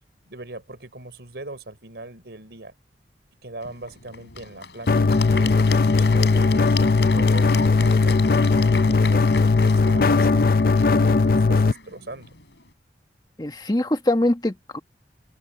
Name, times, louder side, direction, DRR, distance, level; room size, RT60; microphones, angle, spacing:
voice 1, 0.3-2.7 3.4-5.5 5.9-8.3 8.6-9.3 9.6-12.3, right 2 dB, 75° right, 4.0 m, -40 dB
Applause / Crowd, 3.6-12.7, left 5 dB, 75° left, 5.5 m, -35 dB
sound 1, 4.9-11.7, left 3 dB, 55° left, 0.5 m, -18 dB
voice 2, 13.4-14.8, left 1 dB, 25° left, 1.3 m, -23 dB
open air
head